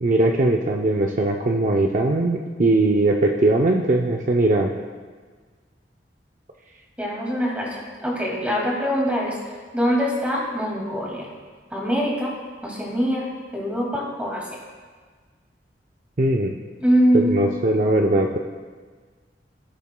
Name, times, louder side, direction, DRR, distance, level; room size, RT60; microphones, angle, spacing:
voice 1, 0.0-4.7 16.2-16.5 17.1-18.4, right 2 dB, 45° right, 1 dB, 0.5 m, -20 dB
voice 2, 7.0-11.3 11.7-12.3 12.6-14.6 16.8-17.3, equal, 10° right, -3 dB, 2.1 m, -23 dB
16.5 x 7.0 x 2.2 m, 1.5 s
head